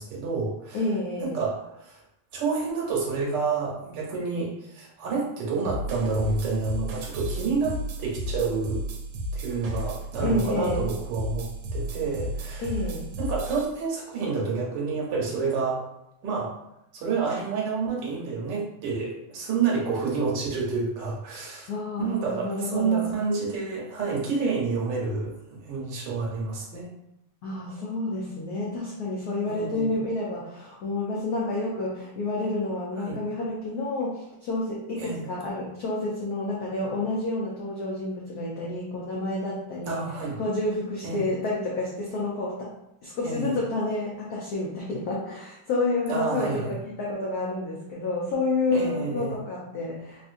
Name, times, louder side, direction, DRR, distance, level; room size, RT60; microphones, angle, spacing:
voice 1, 0.0-0.8 1.2-2.0 2.3-8.8 9.3-11.5 11.7-12.7 13.2-15.9 16.2-16.5 16.9-21.7 22.0-26.9 29.5-29.9 33.1-33.2 35.0-35.2 39.9-40.4 41.0-41.3 43.2-43.6 46.1-46.7 48.7-49.3, right 4 dB, 65° right, -3 dB, 1.3 m, -29 dB
voice 2, 0.7-1.4 10.2-10.8 12.6-13.1 21.7-23.1 27.4-40.0 40.4-42.7 43.0-50.3, left 2 dB, 85° left, -4 dB, 0.8 m, -29 dB
sound 1, 5.6-13.7, equal, 80° right, 1.4 m, -33 dB
3.7 x 2.5 x 2.5 m, 0.83 s
omnidirectional pair, 2.3 m